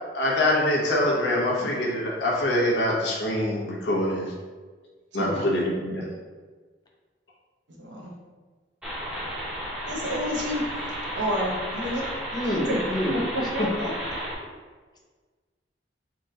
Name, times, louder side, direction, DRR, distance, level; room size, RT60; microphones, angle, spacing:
voice 1, 0.1-4.3 5.1-6.0, left 1 dB, 70° left, -4 dB, 0.8 m, -24 dB
voice 2, 7.8-8.1 9.9-10.6 11.1-12.0 12.4-12.8 13.5-13.9, equal, 85° right, -2 dB, 0.9 m, -30 dB
sound 1, 8.8-14.3, equal, 5° right, 1.1 m, -33 dB
voice 3, 12.3-13.7, left 1 dB, 25° left, -2 dB, 0.7 m, -28 dB
3.8 x 2.9 x 3.7 m, 1.4 s
head